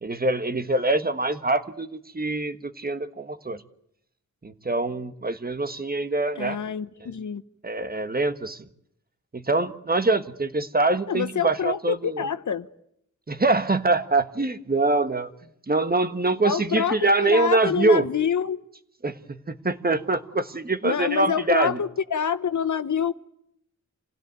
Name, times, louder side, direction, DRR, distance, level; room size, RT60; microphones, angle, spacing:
voice 1, 0.0-3.6 4.4-6.6 7.6-8.6 9.3-12.2 13.3-15.3 15.7-18.1 19.0-21.8, right 2 dB, 30° right, 1.4 m, -24 dB
voice 2, 6.4-7.4 11.1-12.7 16.4-18.6 20.8-23.1, left 7 dB, 75° left, 0.9 m, -26 dB
27.0 x 16.5 x 9.2 m
wide cardioid pair, 95°, 30 cm